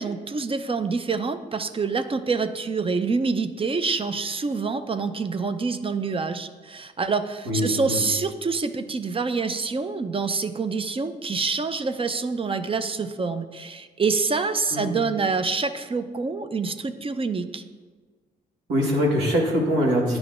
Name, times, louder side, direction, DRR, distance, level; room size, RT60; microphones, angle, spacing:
voice 1, 0.0-17.6, right 4 dB, 30° right, 10 dB, 0.5 m, -26 dB
voice 2, 7.4-8.0 14.7-14.9 18.7-20.2, equal, 85° right, -2 dB, 1.4 m, -23 dB
10.0 x 4.8 x 2.5 m, 1.4 s
supercardioid pair, 50°, 18 cm